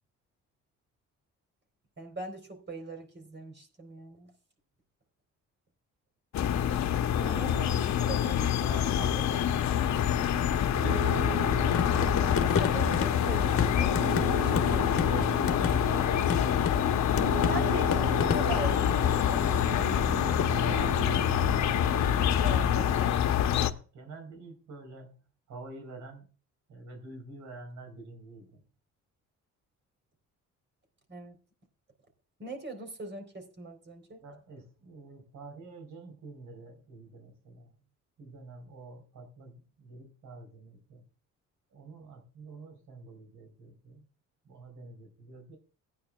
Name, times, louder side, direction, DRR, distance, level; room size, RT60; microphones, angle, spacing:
voice 1, 2.0-4.3 7.2-8.5 8.8-9.2 12.1-15.3 17.5-19.9 22.4-23.2 31.1-31.4 32.4-34.2, right 2 dB, 35° right, 5 dB, 3.9 m, -41 dB
sound 1, 6.3-23.7, left 9 dB, 65° left, 0.9 m, -26 dB
voice 2, 7.2-7.7 8.4-9.4 10.4-11.1 14.6-14.9 15.6-16.8 20.1-21.2 23.6-25.1 25.5-26.3 26.7-28.6 34.2-37.7 38.2-41.0 41.7-44.0 44.5-45.6, right 3 dB, 75° right, 4 dB, 4.0 m, -46 dB
Piano, 9.9-23.0, right 10 dB, 55° right, 0.7 m, -39 dB
sound 2, 10.8-22.7, left 7 dB, 45° left, 1.4 m, -35 dB
16.5 x 9.6 x 2.3 m, 0.37 s
cardioid pair, 90°, 30 cm